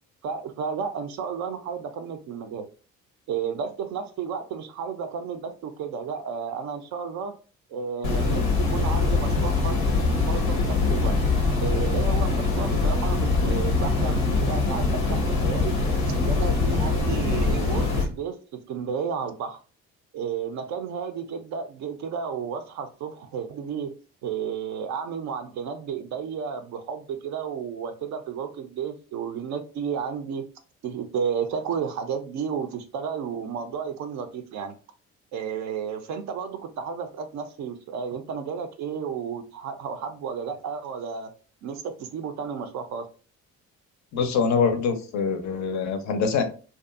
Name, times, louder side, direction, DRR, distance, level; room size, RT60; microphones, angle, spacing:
voice 1, 0.2-2.7 3.3-7.3 7.7-9.8 10.2-11.2 11.6-15.8 16.2-19.6 20.1-23.9 24.2-30.4 30.8-34.7 35.3-41.3 41.6-43.1, right 6 dB, 45° right, 7 dB, 0.4 m, -32 dB
sound 1, 8.0-18.0, left 3 dB, 85° left, 0.6 m, -23 dB
voice 2, 44.1-46.4, left 5 dB, 45° left, 7 dB, 0.5 m, -24 dB
2.6 x 2.2 x 2.2 m, 0.37 s
figure-of-eight pair, 45°, 40 cm